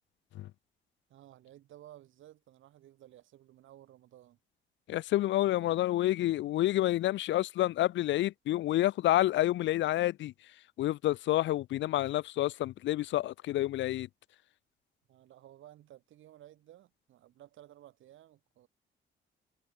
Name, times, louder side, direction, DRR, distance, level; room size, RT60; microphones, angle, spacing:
voice 1, 1.1-4.4 5.5-5.8 6.2-6.5 15.1-18.7, right 13 dB, 80° right, 2.7 m, -56 dB
voice 2, 4.9-10.3 10.8-14.1, left 14 dB, 70° left, 0.5 m, -29 dB
cardioid pair, 90°, 20 cm